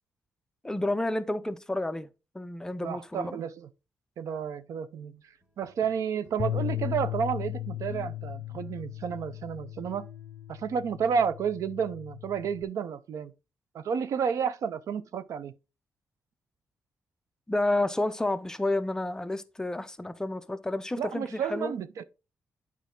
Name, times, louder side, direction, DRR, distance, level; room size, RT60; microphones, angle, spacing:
voice 1, 0.6-2.1 2.3-3.4 17.5-21.7, left 2 dB, 10° left, 0.6 m, -30 dB
voice 2, 2.8-3.7 4.2-5.2 5.6-10.1 10.5-13.3 13.7-15.5 21.0-22.0, right 7 dB, 75° right, 0.6 m, -31 dB
sound 1, 5.4-11.0, right 1 dB, 20° right, 2.6 m, -56 dB
Bass guitar, 6.4-12.6, left 13 dB, 55° left, 0.6 m, -36 dB
9.3 x 4.7 x 3.7 m
cardioid pair, 115°, 6 cm